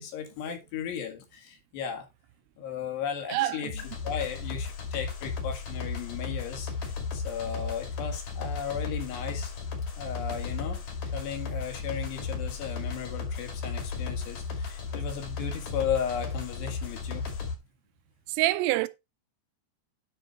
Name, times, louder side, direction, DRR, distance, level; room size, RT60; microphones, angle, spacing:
voice 1, 0.0-2.1 2.6-9.5 10.0-10.8 11.1-17.2, left 7 dB, 65° left, 3.6 m, -35 dB
voice 2, 3.3-3.7 18.3-18.9, right 17 dB, 90° right, 3.3 m, -26 dB
sound 1, 3.6-17.5, left 4 dB, 45° left, 2.8 m, -35 dB
9.5 x 5.9 x 4.6 m
omnidirectional pair, 5.7 m